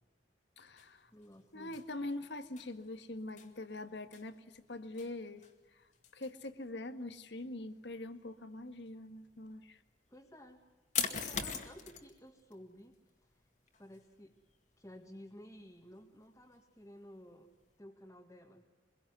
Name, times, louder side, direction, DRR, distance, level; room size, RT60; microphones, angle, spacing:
voice 1, 0.6-1.1 1.5-5.4 5.7-5.9 6.1-9.8, left 2 dB, 75° left, 10 dB, 1.7 m, -43 dB
sound 1, 0.8-17.8, left 7 dB, 40° left, 2.3 m, -46 dB
voice 2, 1.1-1.8 10.1-10.6 11.1-12.9 13.2-13.5 13.8-14.4 14.8-17.5 17.8-18.7, equal, 15° left, -1 dB, 1.9 m, -54 dB
24.0 x 22.5 x 9.5 m, 1.2 s
head